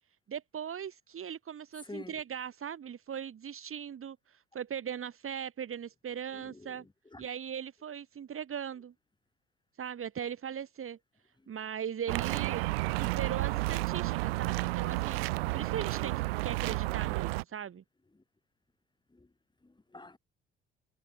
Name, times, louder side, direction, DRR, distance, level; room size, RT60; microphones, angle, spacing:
voice 1, 0.3-6.8 7.2-8.9 9.8-11.0 11.5-12.6 13.0-15.3 15.5-17.8, right 8 dB, 45° right, 3.9 m, -39 dB
voice 2, 1.8-2.2 6.3-7.3 18.1-18.2 19.1-19.3 19.6-20.2, left 2 dB, 15° left, 3.4 m, -48 dB
sound 1, 12.1-17.4, right 23 dB, 75° right, 1.9 m, -31 dB
hypercardioid pair, 50°, 30 cm